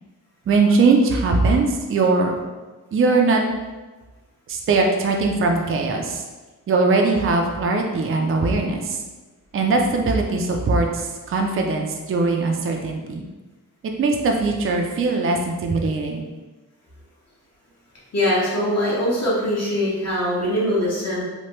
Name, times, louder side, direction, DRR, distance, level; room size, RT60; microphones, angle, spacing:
voice 1, 0.5-2.3 2.9-3.4 4.5-6.2 6.7-9.0 9.5-13.2 14.0-16.3, right 3 dB, 40° right, 2 dB, 0.4 m, -20 dB
voice 2, 18.1-21.2, left 1 dB, 50° left, -7 dB, 1.3 m, -22 dB
3.1 x 2.2 x 3.0 m, 1.2 s
cardioid pair, 65°, 32 cm